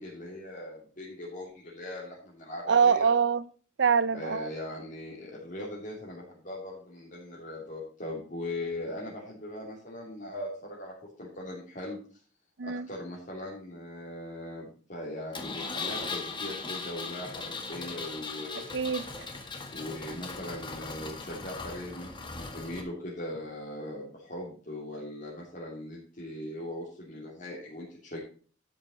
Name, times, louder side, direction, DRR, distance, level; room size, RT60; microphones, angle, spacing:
voice 1, 0.0-3.1 4.1-10.9 11.2-12.0 12.6-18.7 19.7-22.1 22.3-28.2, left 1 dB, 45° left, 3.4 m, -40 dB
voice 2, 2.7-3.5 3.8-4.5 12.6-12.9 18.7-19.0, right 6 dB, 65° right, 0.6 m, -24 dB
Engine, 15.3-22.8, left 4 dB, 25° left, 1.8 m, -38 dB
12.5 x 8.3 x 4.2 m
head